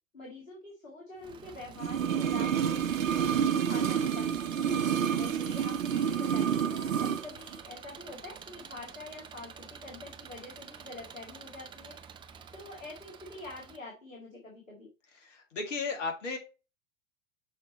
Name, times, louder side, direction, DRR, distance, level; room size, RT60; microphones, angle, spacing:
voice 1, 0.1-2.8 3.2-4.7 5.2-12.0 12.5-14.9, left 2 dB, 85° left, -2 dB, 2.1 m, -46 dB
Engine, 1.2-13.8, right 7 dB, 15° right, 0.4 m, -48 dB
sound 1, 1.8-7.3 7.5-7.6, right 8 dB, 80° right, 0.6 m, -29 dB
voice 2, 15.2-16.4, left 4 dB, 70° left, 4 dB, 2.1 m, -34 dB
6.5 x 4.3 x 4.0 m, 0.30 s
figure-of-eight pair, 90°, 39 cm